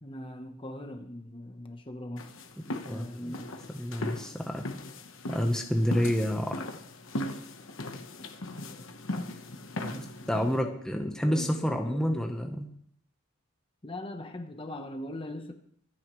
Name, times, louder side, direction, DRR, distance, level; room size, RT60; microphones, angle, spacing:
voice 1, 0.0-2.3 2.6-3.5 8.1-8.3 10.3-10.8 11.2-12.1 13.8-15.5, left 1 dB, 25° left, 5 dB, 1.0 m, -41 dB
sound 1, 2.2-10.6, left 1 dB, 60° left, 1.2 m, -38 dB
voice 2, 2.9-3.3 3.7-4.6 5.3-6.6 9.8-12.7, equal, 5° left, 2 dB, 1.0 m, -29 dB
25.0 x 9.5 x 3.2 m, 0.67 s
head